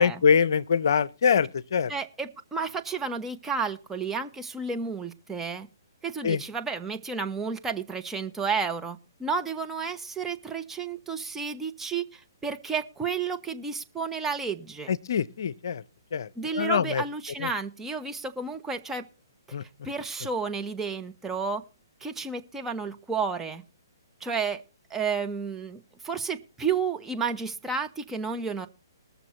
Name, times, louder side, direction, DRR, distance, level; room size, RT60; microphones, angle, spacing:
voice 1, 0.0-1.9 6.2-6.4 15.1-15.8 16.1-16.3 16.6-17.0 17.4-17.5 19.5-19.6, left 6 dB, 65° left, 0.6 m, -23 dB
voice 2, 1.9-5.7 6.0-14.9 16.4-19.0 19.8-21.6 22.0-23.6 24.2-24.6 24.9-28.7, right 5 dB, 10° right, 1.0 m, -31 dB
20.5 x 6.9 x 4.4 m
hypercardioid pair, 135°, 2 cm